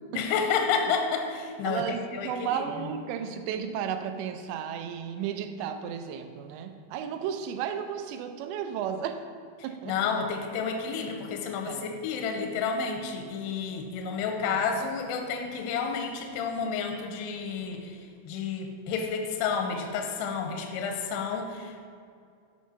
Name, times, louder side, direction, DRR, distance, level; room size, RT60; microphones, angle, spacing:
voice 1, 0.1-1.8 2.2-2.6 9.9-18.0 18.3-21.9, left 5 dB, 85° left, 4 dB, 2.6 m, -30 dB
voice 2, 1.6-9.2 9.6-10.2 11.7-11.9 14.4-14.6, right 8 dB, 85° right, 8 dB, 2.8 m, -34 dB
8.1 x 4.6 x 6.1 m, 2.3 s
omnidirectional pair, 5.1 m